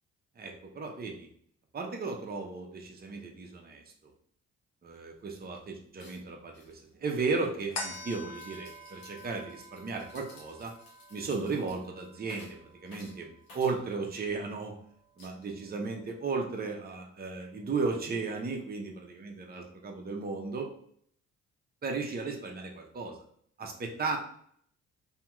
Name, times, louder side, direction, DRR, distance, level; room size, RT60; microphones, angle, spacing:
voice 1, 0.4-1.3 1.7-4.1 4.8-10.7 11.1-14.8 15.2-20.7 21.8-23.1 23.6-24.2, right 4 dB, 30° right, 2 dB, 0.7 m, -35 dB
sound 1, 4.9-5.0 5.3-5.6 6.0-14.5 15.2-15.9, left 2 dB, 80° left, 1.2 m, -56 dB
sound 2, 7.7-14.5 15.0-15.1, left 2 dB, 50° left, 0.8 m, -46 dB
2.9 x 2.8 x 2.3 m, 0.63 s
hypercardioid pair, 55°, 33 cm